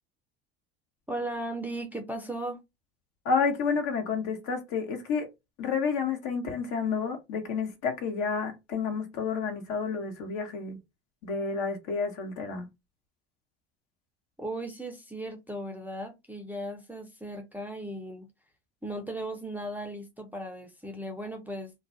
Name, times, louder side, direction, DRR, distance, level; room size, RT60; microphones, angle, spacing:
voice 1, 1.1-2.6 14.4-18.3 18.8-21.7, right 1 dB, 5° right, 0.5 m, -37 dB
voice 2, 3.2-5.3 5.6-10.8 11.2-12.7, left 5 dB, 60° left, 1.0 m, -30 dB
2.4 x 2.2 x 2.5 m
hypercardioid pair, 80°, 31 cm